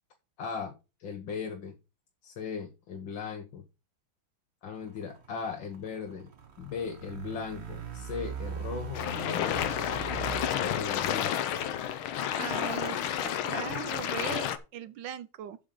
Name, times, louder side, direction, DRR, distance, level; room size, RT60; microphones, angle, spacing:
voice 1, 0.4-0.7 1.0-1.8 2.2-3.6 4.6-6.3 6.6-9.7 10.5-11.5, left 6 dB, 70° left, 1.9 m, -38 dB
sound 1, 4.8-11.1, right 7 dB, 40° right, 1.1 m, -41 dB
sound 2, 8.9-14.6, left 10 dB, 85° left, 1.7 m, -31 dB
voice 2, 12.4-15.6, right 11 dB, 70° right, 1.3 m, -39 dB
7.6 x 5.2 x 7.5 m
omnidirectional pair, 2.2 m